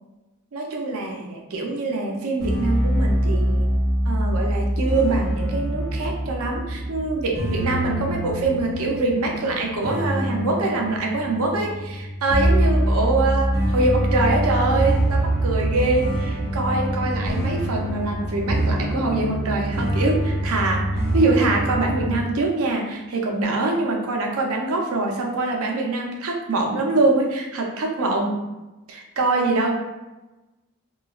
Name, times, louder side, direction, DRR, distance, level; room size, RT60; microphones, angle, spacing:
voice 1, 0.5-3.7 4.1-28.4 28.9-29.8, right 2 dB, 75° right, 1 dB, 0.5 m, -24 dB
sound 1, 2.4-22.2, right 1 dB, 45° right, 0.8 m, -24 dB
3.0 x 2.2 x 2.3 m, 1.1 s
head